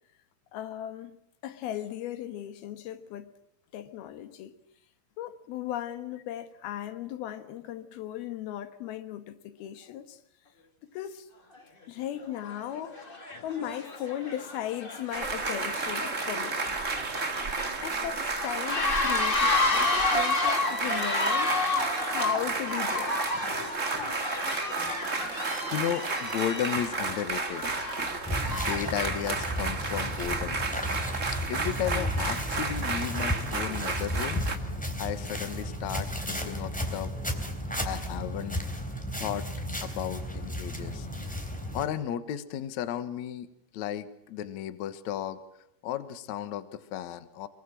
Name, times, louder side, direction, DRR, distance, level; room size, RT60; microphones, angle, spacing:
voice 1, 0.5-3.3 3.7-4.5 5.2-10.2 10.8-11.3 11.9-13.0 13.4-16.6 17.8-21.6 22.0-23.2, left 11 dB, 85° left, 3.3 m, -37 dB
sound 1, 11.5-11.6 12.4-12.6 12.9-28.9, left 2 dB, 20° left, 1.9 m, -31 dB
sound 2, 15.1-34.6, right 4 dB, 30° right, 1.4 m, -32 dB
voice 2, 23.4-24.1 24.4-24.6 25.3-27.7 27.9-28.1 28.6-30.7 31.5-34.7 35.0-37.6 37.9-38.6 39.2-39.5 39.8-41.1 41.7-45.4 45.8-47.5, left 10 dB, 60° left, 2.3 m, -34 dB
sound 3, 28.3-41.9, equal, ahead, 3.0 m, -34 dB
24.0 x 23.5 x 7.7 m
omnidirectional pair, 4.3 m